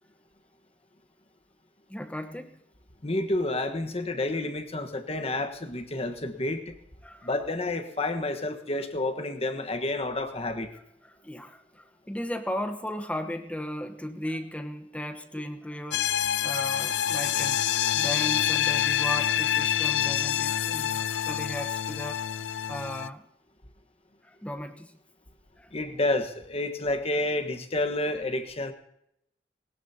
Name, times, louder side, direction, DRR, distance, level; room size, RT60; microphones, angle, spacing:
voice 1, 1.9-2.6 7.0-7.3 11.0-16.1 16.4-22.2 22.7-23.2 24.2-24.9 25.6-25.7, equal, 10° left, 6 dB, 1.1 m, -36 dB
voice 2, 3.0-6.7 7.2-10.7 25.7-28.7, left 2 dB, 35° left, 7 dB, 1.4 m, -29 dB
sound 1, 15.9-23.1, left 10 dB, 85° left, 0.5 m, -27 dB
20.5 x 18.5 x 2.9 m, 0.77 s
head